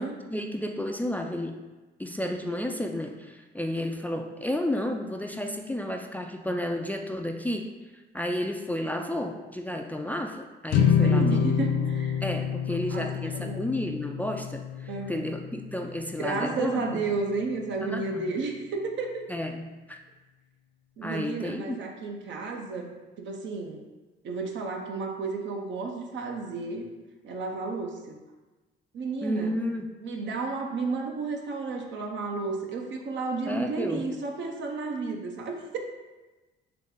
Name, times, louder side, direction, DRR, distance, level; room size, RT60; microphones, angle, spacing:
voice 1, 0.3-1.6 2.0-7.7 8.1-11.4 12.2-17.1 17.9-18.3 19.3-20.0 21.0-21.8 29.2-29.9 33.5-34.1, left 1 dB, 10° left, 3 dB, 0.3 m, -32 dB
sound 1, 10.7-17.1, left 7 dB, 75° left, 0.5 m, -28 dB
voice 2, 11.0-12.2 12.7-13.7 14.9-15.3 16.2-19.2 21.0-22.9 23.2-23.8 24.2-26.9 27.2-28.2 28.9-29.5 30.0-35.8, right 3 dB, 70° right, 2 dB, 0.7 m, -32 dB
3.9 x 3.3 x 3.7 m, 1.2 s
cardioid pair, 90°, 20 cm